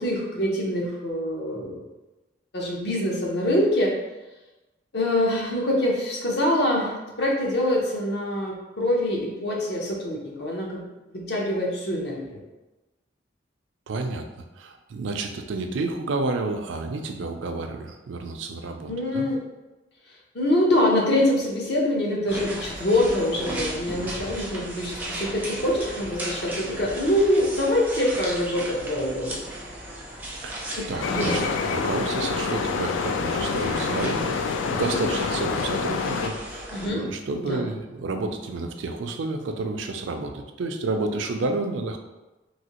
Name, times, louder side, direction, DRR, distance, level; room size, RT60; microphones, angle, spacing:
voice 1, 0.0-1.8 2.5-3.9 4.9-10.8 11.1-12.4 18.9-19.4 20.3-29.4 30.8-31.5 36.7-37.0 37.4-37.6, left 1 dB, 60° left, -2 dB, 0.7 m, -24 dB
voice 2, 13.9-19.3 30.4-30.6 30.9-42.0, right 3 dB, 80° right, 5 dB, 0.4 m, -30 dB
sound 1, 22.3-36.9, right 1 dB, 10° right, 0.4 m, -36 dB
sound 2, 31.0-36.3, left 5 dB, 80° left, 0.3 m, -27 dB
3.2 x 2.7 x 2.9 m, 1.1 s
head